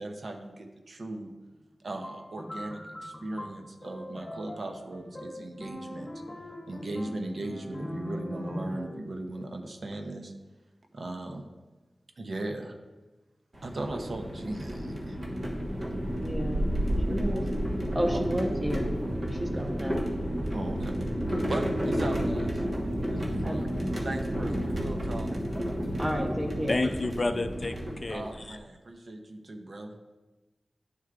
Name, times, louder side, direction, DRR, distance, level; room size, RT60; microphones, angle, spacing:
voice 1, 0.0-1.4 1.8-6.1 6.7-10.3 10.9-11.5 12.2-12.8 13.6-15.2 17.3-17.4 20.5-21.1 21.4-22.6 23.1-23.7 24.0-25.3 28.1-30.0, right 2 dB, 65° right, 4 dB, 0.6 m, -38 dB
sound 1, 2.0-9.1, left 1 dB, 25° left, 1.3 m, -41 dB
sound 2, 13.5-28.5, equal, 45° right, 1.2 m, -31 dB
voice 2, 16.1-16.7 17.1-17.4 17.9-18.9 19.3-20.0 23.4-23.8 24.4-24.5 26.0-26.8, equal, 15° right, 1 dB, 1.1 m, -31 dB
voice 3, 26.7-28.6, left 2 dB, 45° left, 8 dB, 0.3 m, -30 dB
11.0 x 4.5 x 2.4 m, 1.2 s
wide cardioid pair, 75°, 0 cm